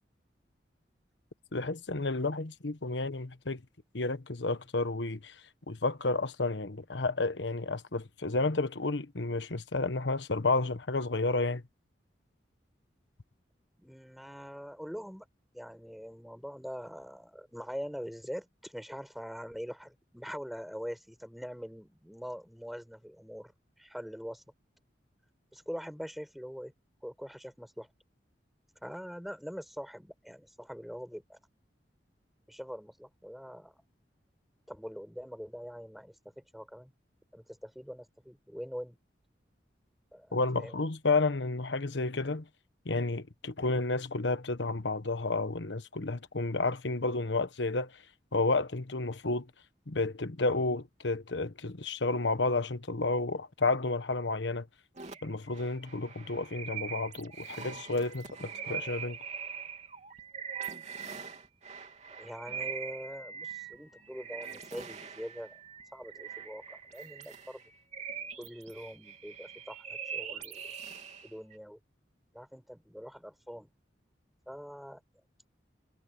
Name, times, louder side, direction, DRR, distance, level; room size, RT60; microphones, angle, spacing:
voice 1, 1.5-3.6 3.9-5.3 5.7-11.6 40.3-42.4 42.8-47.9 48.3-49.5 49.9-54.7 55.2-59.2, left 3 dB, 85° left, 1.2 m, -31 dB
voice 2, 13.8-15.3 15.5-23.5 23.8-24.4 25.5-26.7 27.0-27.9 28.8-31.4 32.5-33.8 34.7-36.9 37.3-39.0 40.1-40.8 62.1-65.6 65.9-67.6 68.4-70.6 71.2-71.8 72.3-73.7 74.5-75.0, equal, ahead, 7.7 m, -43 dB
sound 1, 55.0-71.6, right 7 dB, 40° right, 3.5 m, -43 dB
head